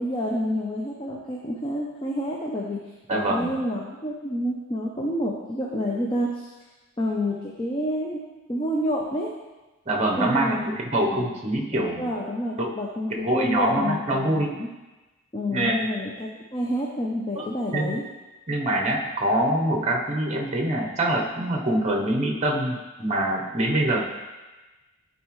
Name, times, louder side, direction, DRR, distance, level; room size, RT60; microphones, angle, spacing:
voice 1, 0.0-2.8 3.1-6.5 7.0-8.2 8.5-9.3 10.2-10.6 11.1-11.4 11.7-14.7 15.3-18.0, equal, 25° left, -3 dB, 0.6 m, -29 dB
voice 2, 3.1-3.6 9.9-12.1 12.6-12.7 13.2-14.5 15.5-15.9 17.4-17.5 17.7-18.0 18.5-24.0, right 1 dB, 30° right, 1 dB, 0.8 m, -24 dB
10.5 x 4.2 x 3.1 m, 1.1 s
head